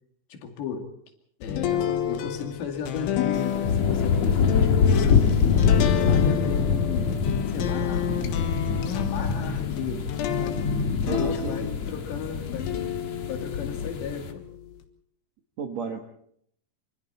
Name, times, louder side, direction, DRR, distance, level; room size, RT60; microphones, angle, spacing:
voice 1, 0.3-0.9 1.4-5.4 5.7-7.1 7.5-8.6 8.9-10.1 10.4-10.7 11.0-12.7 13.3-14.4, left 7 dB, 70° left, 4 dB, 4.5 m, -35 dB
sound 1, 1.4-12.0 12.5-14.8, left 9 dB, 85° left, 4.0 m, -30 dB
sound 2, 3.4-14.3, left 6 dB, 50° left, 2.3 m, -25 dB
voice 2, 11.1-11.7 15.6-16.0, right 5 dB, 60° right, 4 dB, 1.8 m, -32 dB
26.0 x 25.5 x 4.3 m, 0.67 s
omnidirectional pair, 5.3 m